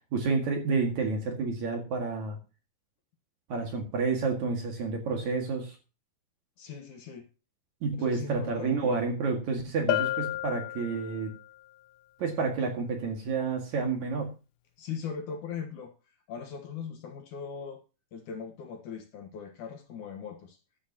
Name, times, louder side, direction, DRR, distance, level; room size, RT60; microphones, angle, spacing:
voice 1, 0.1-2.4 3.5-5.8 7.8-11.3 12.2-14.3, right 4 dB, 55° right, 2 dB, 3.1 m, -29 dB
voice 2, 6.6-7.3 8.0-8.9 14.8-15.9 16.3-17.8 18.1-20.6, left 6 dB, 60° left, 4 dB, 2.5 m, -39 dB
Bell, 9.9-11.5, left 15 dB, 80° left, 1.9 m, -31 dB
14.0 x 11.5 x 2.9 m, 0.32 s
omnidirectional pair, 4.4 m